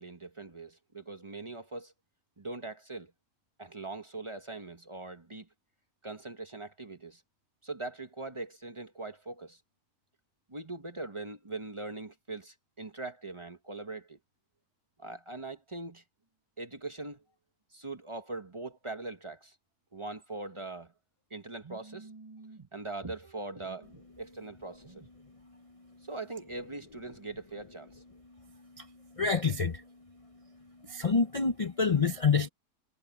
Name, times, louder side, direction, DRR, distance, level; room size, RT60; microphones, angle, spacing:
voice 1, 0.0-1.9 2.4-3.1 3.6-5.5 6.0-7.2 7.6-9.6 10.5-14.2 15.0-16.0 16.6-17.2 17.7-19.5 19.9-20.9 21.3-25.1 26.0-28.0, right 2 dB, 20° right, 1.2 m, -41 dB
voice 2, 29.2-29.8 30.9-32.5, left 5 dB, 35° left, 0.6 m, -27 dB
omnidirectional pair, 1.6 m